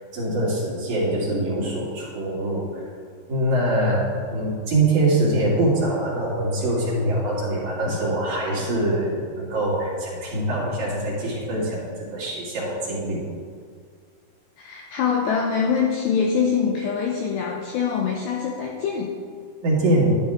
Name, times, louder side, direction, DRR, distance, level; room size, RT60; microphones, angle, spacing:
voice 1, 0.1-2.8 3.3-13.2 19.6-20.2, right 1 dB, 45° right, -6 dB, 3.4 m, -23 dB
voice 2, 14.6-19.2, left 6 dB, 85° left, 0 dB, 2.4 m, -24 dB
12.5 x 11.5 x 3.6 m, 2.1 s
omnidirectional pair, 6.0 m